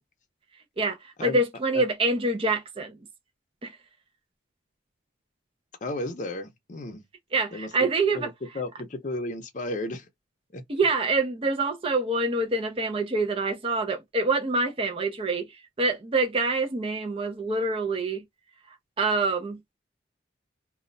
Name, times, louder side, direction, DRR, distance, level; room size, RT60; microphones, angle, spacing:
voice 1, 0.8-3.0 3.6-3.7 7.3-8.3 10.7-18.2 19.0-19.6, right 3 dB, 30° right, 0.5 m, -26 dB
voice 2, 5.8-7.0 7.5-7.9 8.1-8.3 8.5-10.1 10.5-10.6, left 2 dB, 40° left, 0.6 m, -33 dB
2.2 x 2.1 x 3.8 m
head